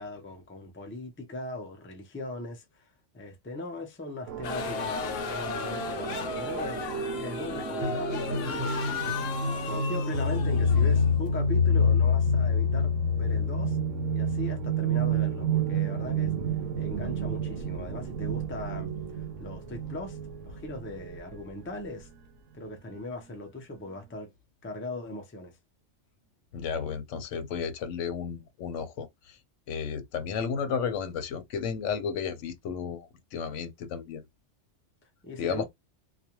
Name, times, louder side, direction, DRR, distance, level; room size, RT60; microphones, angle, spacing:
voice 1, 0.0-9.2 9.6-13.8 14.1-16.3 16.7-20.2 20.4-22.1 22.5-24.3 24.6-25.6 27.3-27.4 35.2-35.7, left 1 dB, 15° left, 0.4 m, -39 dB
sound 1, 4.3-21.4, left 1 dB, 90° right, 0.9 m, -28 dB
sound 2, 4.4-11.6, left 5 dB, 60° left, 0.7 m, -35 dB
voice 2, 26.5-29.1 29.7-33.1 33.3-34.2 35.4-35.7, left 6 dB, 85° left, 0.9 m, -32 dB
2.4 x 2.2 x 2.9 m
omnidirectional pair, 1.2 m